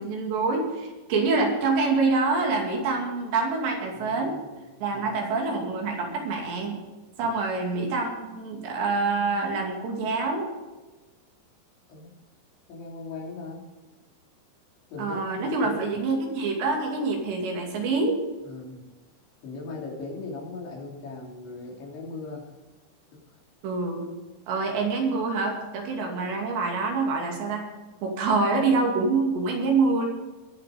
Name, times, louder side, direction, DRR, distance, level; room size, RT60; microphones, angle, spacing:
voice 1, 0.0-4.4 4.8-6.8 7.2-10.5 15.0-18.2 23.6-24.1 24.5-27.7 28.0-30.1, right 3 dB, 70° right, 1 dB, 4.7 m, -26 dB
voice 2, 4.0-4.5 4.9-5.2 7.2-7.4 11.9-12.1 12.7-13.6 14.9-16.1 18.4-18.9 19.4-22.4 23.1-23.2, left 3 dB, 75° left, -2 dB, 5.7 m, -39 dB
21.5 x 7.6 x 5.2 m, 1.2 s
omnidirectional pair, 5.3 m